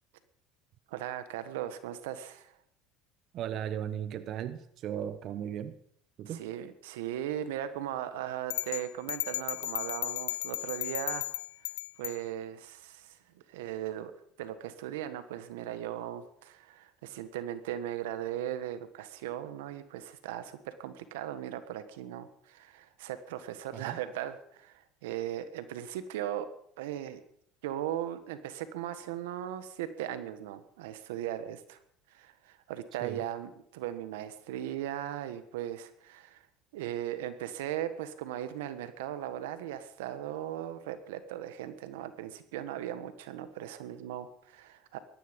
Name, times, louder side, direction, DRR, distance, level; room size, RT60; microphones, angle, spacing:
voice 1, 0.9-2.5 6.3-11.3 12.0-14.1 14.4-26.5 26.8-27.2 27.6-31.8 32.1-36.4 36.7-45.0, right 11 dB, 85° right, 12 dB, 1.5 m, -38 dB
voice 2, 3.3-5.7 6.2-6.5 23.8-24.0 33.0-33.2, right 9 dB, 55° right, 12 dB, 1.1 m, -36 dB
sound 1, 8.5-12.2, left 18 dB, 85° left, 0.5 m, -35 dB
18.0 x 13.5 x 5.4 m, 0.68 s
supercardioid pair, 95°, 0 cm